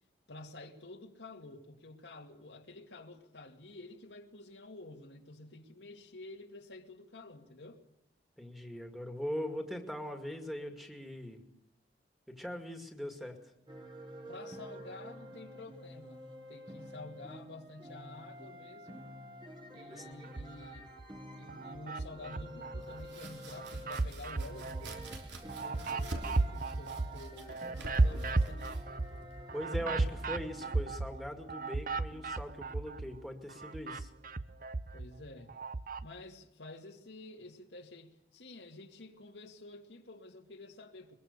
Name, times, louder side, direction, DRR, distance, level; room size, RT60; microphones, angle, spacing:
voice 1, 0.3-7.8 14.3-19.1 19.7-20.9 21.4-28.7 34.9-35.6 36.0-41.2, left 2 dB, 85° left, 2.4 m, -50 dB
voice 2, 8.4-11.4 12.3-13.4 19.9-20.1 29.5-34.1, equal, ahead, 2.2 m, -41 dB
sound 1, 13.7-31.0, equal, 25° right, 1.8 m, -49 dB
sound 2, 20.2-21.1 21.5-23.1 23.5-33.2 33.5-36.1, right 3 dB, 50° right, 0.8 m, -35 dB
Domestic sounds home sounds, 22.8-30.5, right 2 dB, 85° right, 3.4 m, -48 dB
22.5 x 21.5 x 6.8 m
head